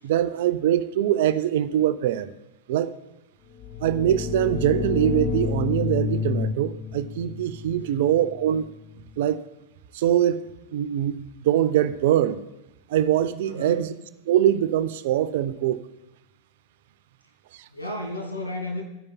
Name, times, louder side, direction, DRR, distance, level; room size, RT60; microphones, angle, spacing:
voice 1, 0.0-2.3 2.7-2.9 3.8-8.7 9.2-9.4 9.9-10.4 10.7-11.1 11.4-12.4 12.9-13.9 14.3-15.8, right 11 dB, 55° right, 14 dB, 0.5 m, -23 dB
sound 1, 3.5-9.1, left 6 dB, 25° left, 0.8 m, -30 dB
voice 2, 13.4-13.9 17.7-18.8, left 1 dB, 85° left, -1 dB, 2.0 m, -33 dB
13.0 x 9.6 x 2.2 m, 1.0 s
figure-of-eight pair, 90°, 0 cm